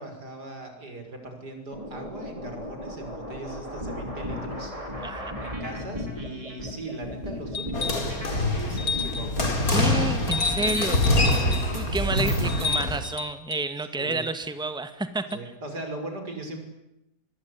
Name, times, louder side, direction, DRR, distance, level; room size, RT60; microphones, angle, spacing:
voice 1, 0.0-4.7 5.0-9.6 11.3-11.7 13.9-14.2 15.3-16.6, right 2 dB, 85° right, 5 dB, 6.6 m, -39 dB
sound 1, 1.7-9.7 10.0-12.7, equal, 20° right, 5.8 m, -35 dB
voice 2, 5.0-5.4 9.7-15.4, right 2 dB, 5° right, 10 dB, 1.8 m, -30 dB
sound 2, 7.5-8.1 8.8-9.4 10.3-11.7 12.5-13.7 15.3-15.4, left 5 dB, 80° left, 2.9 m, -31 dB
sound 3, 7.7-13.0, left 1 dB, 60° left, 4.5 m, -25 dB
24.5 x 23.5 x 9.8 m, 0.86 s
omnidirectional pair, 1.7 m